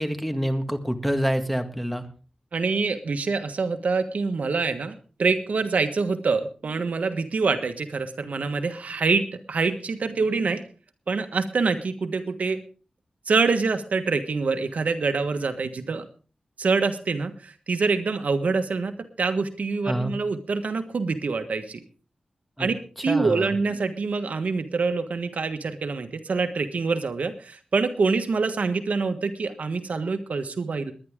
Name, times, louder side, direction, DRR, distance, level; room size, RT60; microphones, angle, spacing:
voice 1, 0.0-2.1 19.9-20.1 22.6-22.7 23.1-23.6, equal, ahead, 7 dB, 1.8 m, -27 dB
voice 2, 2.5-10.6 11.1-12.6 13.3-16.0 16.6-21.8 22.6-22.7 23.0-30.9, right 4 dB, 80° right, 8 dB, 1.4 m, -25 dB
21.0 x 10.5 x 3.7 m, 0.38 s
wide cardioid pair, 85°, 2 cm